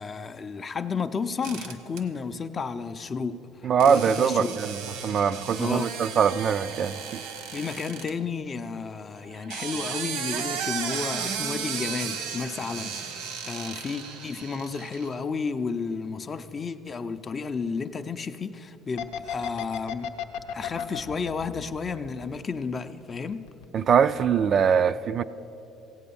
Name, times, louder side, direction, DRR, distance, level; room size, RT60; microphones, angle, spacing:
voice 1, 0.0-4.5 5.6-5.9 7.5-20.1 20.5-23.5, left 5 dB, 25° left, 0.5 m, -32 dB
sound 1, 1.4-2.0 3.8-8.1 9.3-15.1, right 7 dB, 85° right, 1.1 m, -35 dB
voice 2, 3.6-7.2 23.7-25.2, right 7 dB, 40° right, 0.3 m, -23 dB
sound 2, 19.0-22.7 23.0-23.9 24.2-24.4, left 9 dB, 85° left, 0.7 m, -34 dB
16.0 x 8.6 x 6.9 m
cardioid pair, 130°, 0 cm